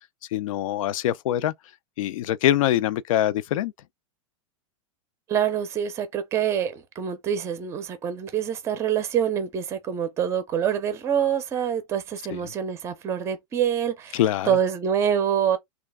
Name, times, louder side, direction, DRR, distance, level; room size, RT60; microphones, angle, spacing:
voice 1, 0.3-1.5 2.0-3.7 12.3-12.5 14.1-14.6, left 12 dB, 75° left, 0.4 m, -24 dB
voice 2, 5.3-14.2 14.5-15.6, right 8 dB, 15° right, 0.5 m, -26 dB
3.2 x 2.4 x 3.5 m
supercardioid pair, 160°, 17 cm